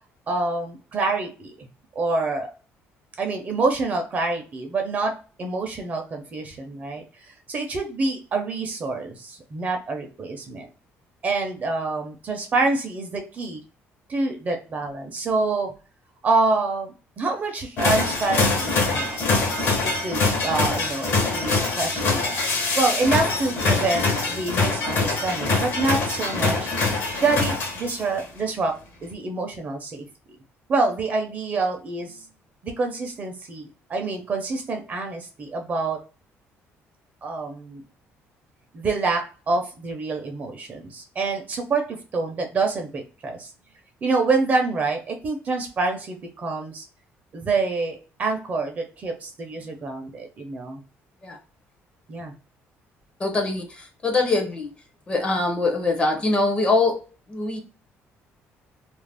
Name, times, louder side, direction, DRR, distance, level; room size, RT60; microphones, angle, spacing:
voice 1, 0.3-2.5 3.2-5.1 5.4-10.7 11.2-13.6 14.1-15.7 16.2-19.2 19.8-22.4 22.7-26.7 27.2-28.7 29.0-30.1 30.7-32.2 32.6-36.0 37.2-37.8 38.7-43.5 44.0-46.8 47.3-50.8 52.1-52.3, right 3 dB, 35° right, 3 dB, 0.6 m, -26 dB
sound 1, 17.8-28.2, left 3 dB, 60° left, 0.9 m, -24 dB
voice 2, 53.2-54.7 55.1-57.0 57.3-57.6, left 3 dB, 25° left, 3 dB, 0.6 m, -23 dB
2.4 x 2.0 x 3.3 m, 0.34 s
cardioid pair, 140°, 5 cm